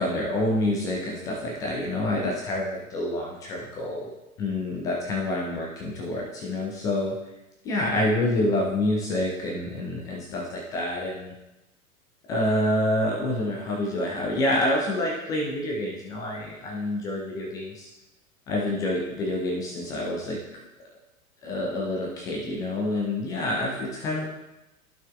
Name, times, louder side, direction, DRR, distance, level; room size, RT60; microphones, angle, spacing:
voice 1, 0.0-4.1 4.4-7.2 7.6-11.3 12.3-17.9 18.5-20.4 21.4-24.3, left 1 dB, 10° left, -2 dB, 0.4 m, -27 dB
14.0 x 5.6 x 2.3 m, 0.97 s
figure-of-eight pair, 100°, 44 cm